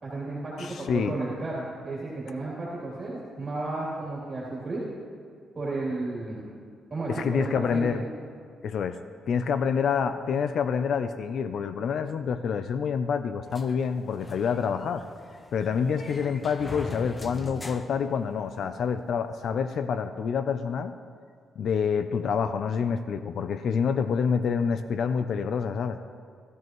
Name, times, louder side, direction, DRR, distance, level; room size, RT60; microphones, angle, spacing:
voice 1, 0.0-4.8 5.5-6.4 6.9-8.0, right 2 dB, 30° right, -7 dB, 3.0 m, -33 dB
voice 2, 0.6-1.2 7.1-8.0 8.6-9.0 9.3-15.0 15.5-20.9 21.6-26.0, left 6 dB, 60° left, 10 dB, 0.5 m, -27 dB
sound 1, 13.5-18.8, left 2 dB, 20° left, 0.7 m, -42 dB
17.5 x 13.5 x 3.1 m, 2.1 s
cardioid pair, 130°, 0 cm